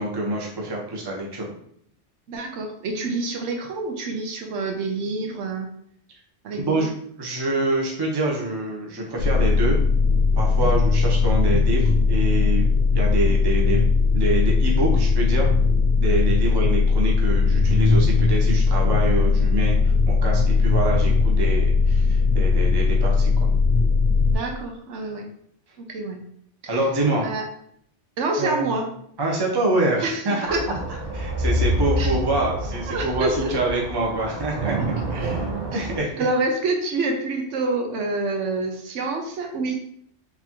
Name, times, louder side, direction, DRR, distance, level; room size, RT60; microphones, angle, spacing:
voice 1, 0.0-1.5 6.6-6.9 7.2-9.8 10.4-12.7 12.9-13.9 14.1-15.5 16.0-23.5 26.7-27.3 28.4-28.7 29.2-30.8 31.1-34.8 35.1-36.3, right 2 dB, 25° right, -2 dB, 0.6 m, -26 dB
voice 2, 2.3-5.7 6.4-6.9 10.6-10.7 16.4-16.5 24.3-25.2 25.8-26.2 26.6-26.8 27.2-27.4 28.2-28.9 30.0-30.2 30.5-30.6 32.0-32.1 32.9-33.5 34.8-34.9 35.7-35.8 36.2-39.7, right 3 dB, 80° right, 2 dB, 1.0 m, -27 dB
sound 1, 9.2-24.4, left 4 dB, 75° left, 0.9 m, -19 dB
sound 2, 30.5-36.0, right 1 dB, 50° right, 1.1 m, -27 dB
4.1 x 2.7 x 2.9 m, 0.68 s
omnidirectional pair, 1.2 m